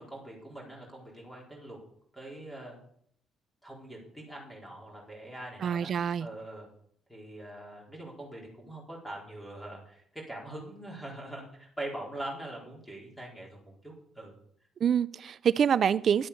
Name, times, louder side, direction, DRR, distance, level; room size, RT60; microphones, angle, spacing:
voice 1, 0.0-1.8 2.1-2.8 3.6-6.7 7.1-14.3, right 1 dB, 5° left, -2 dB, 4.2 m, -43 dB
voice 2, 5.6-6.3 14.8-16.3, right 8 dB, 40° right, 16 dB, 0.4 m, -26 dB
12.0 x 8.4 x 6.9 m, 0.67 s
cardioid pair, 160°, 0 cm